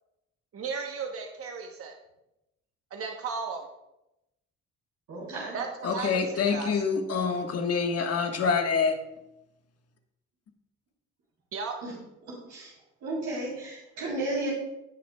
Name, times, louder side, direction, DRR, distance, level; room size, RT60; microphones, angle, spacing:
voice 1, 0.5-1.9 2.9-3.6 5.5-6.2 6.5-6.8 11.5-11.7, right 5 dB, 50° right, 2 dB, 1.0 m, -35 dB
voice 2, 5.1-5.6 11.8-11.9 12.3-12.7 13.0-14.5, right 2 dB, 70° right, -5 dB, 3.3 m, -33 dB
voice 3, 5.8-9.0, left 5 dB, 55° left, 4 dB, 1.4 m, -26 dB
18.0 x 6.0 x 2.3 m, 0.90 s
cardioid pair, 90°, 30 cm